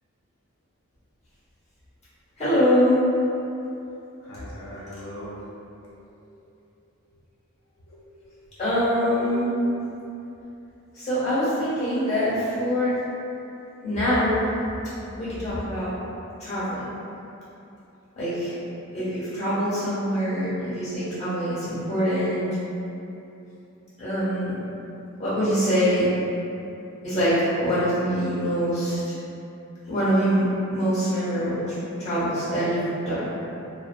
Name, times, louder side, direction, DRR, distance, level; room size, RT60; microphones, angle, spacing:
voice 1, 2.4-3.0 8.6-9.5 10.9-12.9 13.8-14.3 15.2-15.9 16.4-16.9 18.2-18.5 18.9-22.5 24.0-24.6 25.2-26.1 27.0-29.0 29.9-30.4 30.7-33.3, equal, 30° left, -13 dB, 1.0 m, -24 dB
voice 2, 4.2-5.4 5.8-6.3 6.8-6.9 7.9-8.8 9.2-9.5 9.9-10.0 11.8-12.1 12.6-13.0, left 1 dB, 75° left, -7 dB, 0.3 m, -42 dB
2.5 x 2.1 x 2.3 m, 2.8 s
head